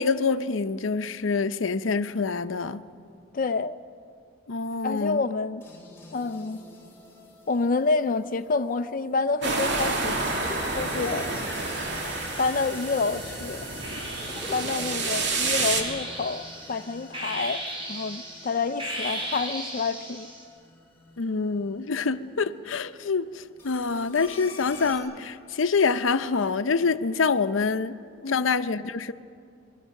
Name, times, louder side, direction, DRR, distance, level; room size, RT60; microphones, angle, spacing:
voice 1, 0.0-2.9 4.5-5.2 21.2-27.9 28.3-29.1, left 4 dB, 85° left, 0.7 m, -26 dB
voice 2, 3.3-3.8 4.8-5.6 6.1-6.6 7.5-10.5 10.8-11.3 12.4-13.7 14.5-20.3 28.2-28.5, left 4 dB, 45° left, 0.5 m, -28 dB
sound 1, 5.6-21.7 23.6-25.0, left 1 dB, 15° left, 4.0 m, -44 dB
sound 2, 9.4-15.8, right 3 dB, 65° right, 2.8 m, -29 dB
sound 3, 12.6-13.2 13.8-20.4, right 1 dB, 30° right, 4.6 m, -37 dB
28.0 x 22.0 x 6.5 m
head